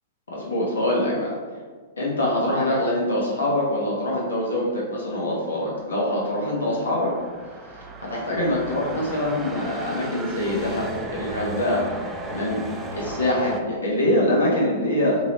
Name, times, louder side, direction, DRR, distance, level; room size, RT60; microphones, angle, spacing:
voice 1, 0.3-1.3 2.0-7.1 8.0-10.9 11.1-11.9 12.3-12.6 12.9-15.2, left 1 dB, 80° left, -4 dB, 1.0 m, -24 dB
sound 1, 5.6-13.6, right 2 dB, 15° right, 0.4 m, -36 dB
2.9 x 2.7 x 3.2 m, 1.5 s
hypercardioid pair, 110°, 0 cm